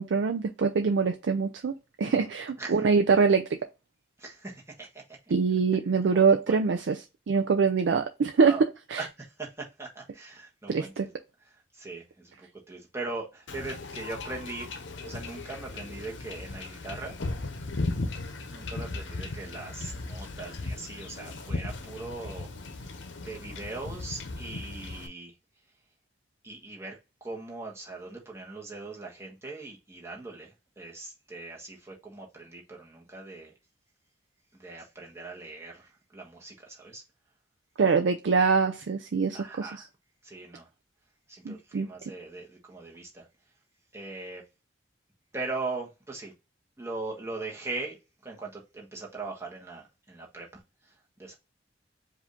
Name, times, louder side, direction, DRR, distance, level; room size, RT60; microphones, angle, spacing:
voice 1, 0.0-1.7 2.0-3.5 5.3-7.0 7.3-8.6 8.9-9.1 10.7-11.1 37.8-39.8 41.5-41.9, right 5 dB, 80° right, 0.4 m, -24 dB
voice 2, 2.6-2.9 4.2-5.0 6.1-6.6 8.4-8.6 9.0-9.1 9.4-11.1 11.7-14.7 15.0-17.1 18.4-22.5 22.7-25.3 26.4-30.5 30.8-33.5 34.5-37.0 39.3-39.9 40.2-40.7 41.3-43.3 43.9-44.4 45.3-46.3 46.8-48.0 48.2-50.6 51.2-51.4, right 3 dB, 15° right, 1.3 m, -40 dB
Wind / Ocean / Boat Water vehicle, 13.5-25.1, left 2 dB, 85° left, 0.7 m, -37 dB
4.9 x 2.6 x 3.6 m
head